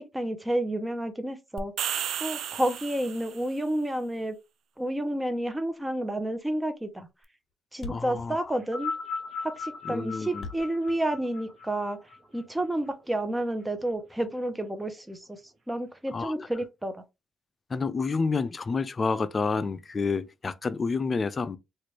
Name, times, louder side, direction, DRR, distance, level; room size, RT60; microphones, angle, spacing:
voice 1, 0.0-1.7 2.2-4.4 4.8-7.1 7.7-8.9 9.4-12.0 12.3-15.4 15.7-17.0, right 1 dB, 10° right, 0.7 m, -30 dB
sound 1, 1.6-3.5, right 9 dB, 75° right, 0.3 m, -33 dB
Thump thud, 6.4-6.6 6.9-7.0 7.2-7.3 7.5-7.6 7.8-11.8, left 4 dB, 50° left, 1.1 m, -44 dB
voice 2, 7.9-8.5 9.8-10.5 16.1-16.5 17.7-21.6, left 4 dB, 35° left, 0.4 m, -29 dB
sound 2, 8.6-13.1 14.0-14.1, left 4 dB, 45° right, 1.0 m, -38 dB
3.1 x 2.4 x 3.1 m
cardioid pair, 90°, 0 cm